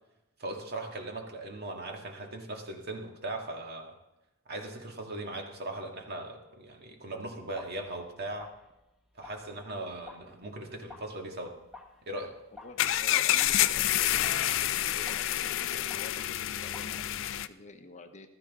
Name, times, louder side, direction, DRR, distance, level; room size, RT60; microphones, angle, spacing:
voice 1, 0.4-4.0 4.5-8.5 9.2-11.6 12.0-12.4, right 2 dB, 50° right, 2 dB, 2.0 m, -39 dB
sound 1, 7.5-17.5, left 3 dB, ahead, 1.3 m, -54 dB
voice 2, 12.5-18.3, left 2 dB, 35° left, 7 dB, 0.8 m, -49 dB
sound 2, 12.8-17.5, left 13 dB, 65° left, 0.5 m, -28 dB
15.0 x 13.5 x 3.7 m, 0.94 s
head